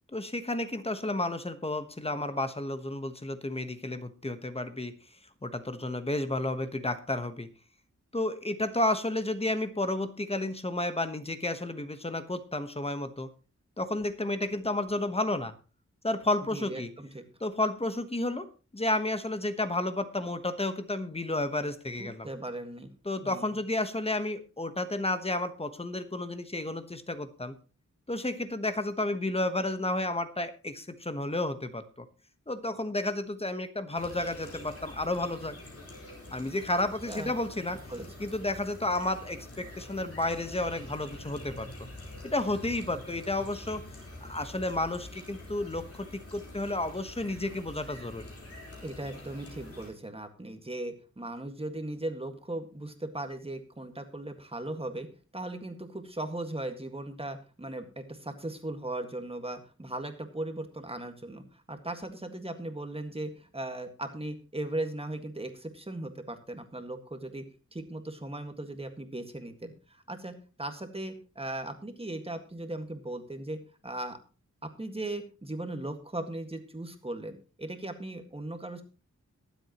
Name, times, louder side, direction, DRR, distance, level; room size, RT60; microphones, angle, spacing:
voice 1, 0.1-4.9 5.4-7.5 8.1-13.3 13.8-15.5 16.0-16.9 17.4-18.5 18.7-22.3 23.0-27.5 28.1-32.0 32.5-35.6 36.3-37.8 38.2-41.9 42.2-43.8 44.2-48.2, left 2 dB, 20° left, 10 dB, 1.2 m, -31 dB
voice 2, 16.5-17.2 22.0-22.9 23.2-23.5 37.1-37.3 37.9-38.1 48.8-55.1 55.3-67.4 67.7-70.3 70.6-73.6 73.8-74.2 74.8-78.8, right 1 dB, 20° right, 6 dB, 1.8 m, -38 dB
sound 1, 33.9-49.9, left 1 dB, 50° left, 4.7 m, -46 dB
22.5 x 7.9 x 3.0 m, 0.34 s
wide cardioid pair, 100°, 30 cm